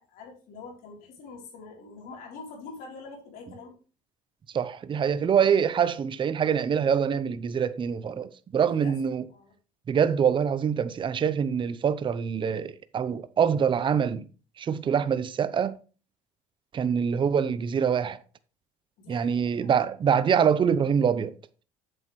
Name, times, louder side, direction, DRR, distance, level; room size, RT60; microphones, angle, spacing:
voice 1, 0.0-3.8 8.6-8.9 9.3-9.5 19.0-19.7, left 4 dB, 70° left, 3.6 m, -45 dB
voice 2, 4.5-9.3 9.9-14.3 14.6-15.8 16.7-18.2 19.1-21.3, right 7 dB, 30° right, 0.7 m, -25 dB
8.1 x 7.6 x 3.2 m
cardioid pair, 105°, 15 cm